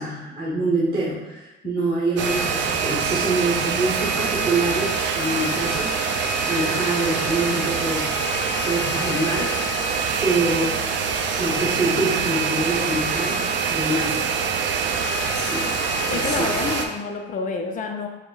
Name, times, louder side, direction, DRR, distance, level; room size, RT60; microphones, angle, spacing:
voice 1, 0.0-5.9 6.4-8.1 8.6-9.9 10.2-10.8 11.4-14.2 15.3-15.7 16.1-16.6, right 2 dB, 25° right, -6 dB, 1.0 m, -25 dB
sound 1, 2.2-16.9, right 5 dB, 65° right, 0.4 m, -24 dB
voice 2, 14.1-14.5 16.1-18.1, left 4 dB, 40° left, 4 dB, 0.5 m, -29 dB
4.8 x 2.1 x 3.9 m, 1.1 s
cardioid pair, 130°, 20 cm